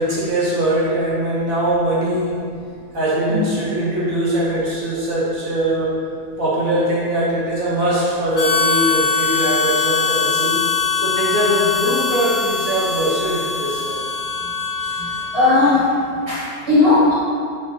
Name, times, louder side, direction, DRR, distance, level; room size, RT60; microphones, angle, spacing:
voice 1, 0.0-2.4 2.9-5.9 6.4-10.6 10.9-14.0, right 1 dB, 70° right, -7 dB, 1.6 m, -21 dB
Harmonica, 8.3-15.6, left 5 dB, 35° left, 0.8 m, -22 dB
voice 2, 15.0-15.8 16.3-17.1, left 2 dB, 25° right, -11 dB, 1.2 m, -16 dB
7.3 x 5.0 x 2.8 m, 2.2 s
omnidirectional pair, 1.5 m